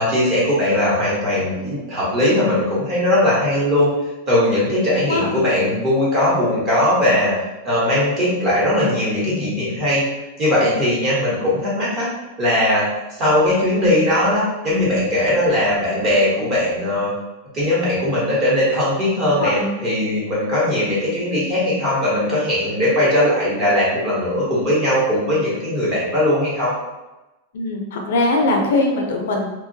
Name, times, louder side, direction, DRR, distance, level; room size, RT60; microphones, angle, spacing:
voice 1, 0.0-3.9 4.3-7.3 7.6-10.0 10.4-12.1 12.4-12.9 13.2-17.1 17.5-19.6 19.8-26.7, left 1 dB, 25° right, -7 dB, 1.0 m, -19 dB
voice 2, 19.4-19.7 27.5-29.5, left 2 dB, 70° left, 1 dB, 0.5 m, -21 dB
2.9 x 2.2 x 2.6 m, 1.0 s
supercardioid pair, 175°, 0 cm